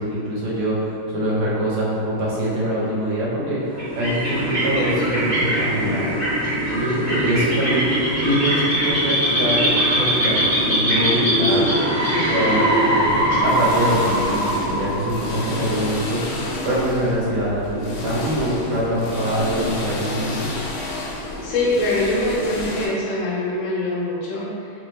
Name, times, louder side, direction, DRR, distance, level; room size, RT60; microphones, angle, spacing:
voice 1, 0.0-6.1 6.7-11.6 12.0-20.5, equal, 75° right, -6 dB, 1.6 m, -24 dB
sound 1, 3.7-14.1, right 1 dB, 20° right, 1.3 m, -22 dB
sound 2, 11.5-16.0, right 1 dB, 60° right, 0.8 m, -23 dB
sound 3, 13.0-22.9, left 2 dB, 85° left, 1.5 m, -31 dB
voice 2, 21.4-24.7, left 2 dB, 70° left, -5 dB, 1.4 m, -23 dB
3.7 x 2.6 x 3.0 m, 2.6 s
omnidirectional pair, 2.3 m